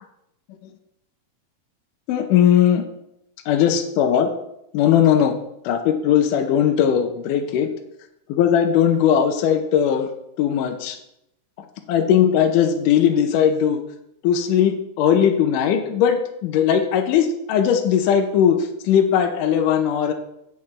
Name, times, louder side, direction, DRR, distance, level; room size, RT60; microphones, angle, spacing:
voice 1, 2.1-2.8 3.5-4.3 4.7-5.4 5.6-7.7 8.3-10.1 10.4-11.0 11.9-13.8 14.2-20.1, left 9 dB, 75° left, 5 dB, 2.2 m, -18 dB
15.5 x 5.9 x 3.2 m, 0.81 s
omnidirectional pair, 3.9 m